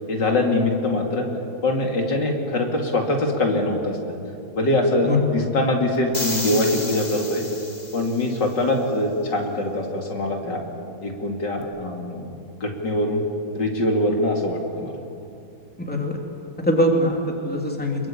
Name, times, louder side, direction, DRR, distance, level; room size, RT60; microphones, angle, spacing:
voice 1, 0.1-1.3 1.6-4.1 4.5-7.4 7.9-10.6 11.0-12.3 12.6-13.2 13.5-14.9, left 1 dB, 75° left, 1 dB, 3.3 m, -23 dB
sound 1, 6.1-8.4, left 1 dB, 25° left, 2.3 m, -31 dB
voice 2, 15.8-16.2 16.6-18.1, left 1 dB, 5° left, 1 dB, 2.9 m, -22 dB
26.5 x 22.5 x 8.6 m, 2.6 s
omnidirectional pair, 1.9 m